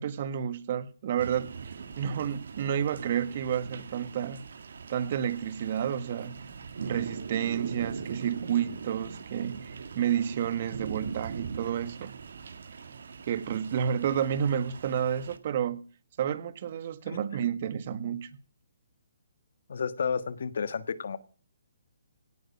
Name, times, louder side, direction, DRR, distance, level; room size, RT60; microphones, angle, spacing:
voice 1, 0.0-4.4 4.9-6.4 6.8-12.1 13.3-15.8 16.2-18.3, right 9 dB, 45° right, 1.5 m, -30 dB
sound 1, 1.2-15.4, right 5 dB, 70° right, 1.8 m, -41 dB
voice 2, 19.7-21.2, left 6 dB, 65° left, 1.5 m, -31 dB
17.5 x 9.2 x 5.8 m
hypercardioid pair, 150°, 0 cm